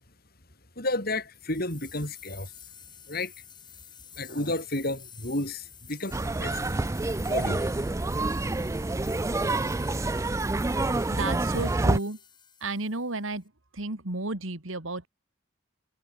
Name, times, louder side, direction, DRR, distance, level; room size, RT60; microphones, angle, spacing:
voice 1, 0.8-2.5 3.1-3.3 4.2-6.7 7.3-7.7, left 2 dB, 45° left, 6.2 m, -31 dB
sound 1, 1.3-13.4, left 8 dB, 20° left, 4.0 m, -49 dB
sound 2, 6.1-12.0, right 2 dB, 15° right, 0.3 m, -27 dB
voice 2, 10.7-12.2 12.6-15.1, right 2 dB, 75° right, 2.6 m, -33 dB
head